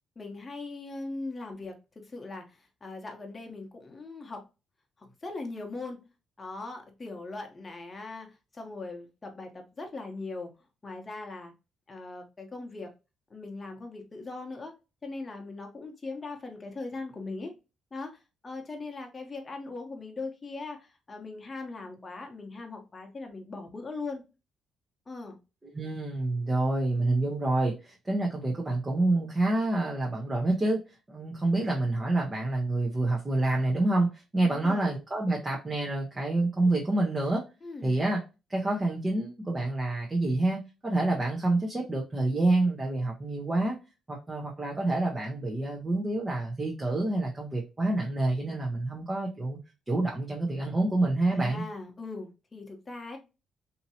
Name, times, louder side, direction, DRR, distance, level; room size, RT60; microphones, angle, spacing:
voice 1, 0.2-1.8 2.0-4.4 5.0-6.0 6.4-10.5 10.8-11.5 11.9-12.9 13.3-14.7 15.0-17.5 17.9-24.2 25.1-25.4 34.4-34.9 37.6-38.0 51.2-53.2, left 3 dB, 25° left, 3 dB, 0.9 m, -40 dB
voice 2, 25.7-30.8 31.1-37.4 37.8-38.2 38.5-43.8 44.1-49.6 49.9-51.6, right 2 dB, 25° right, -2 dB, 0.8 m, -27 dB
2.9 x 2.7 x 2.7 m, 0.28 s
cardioid pair, 90°, 0 cm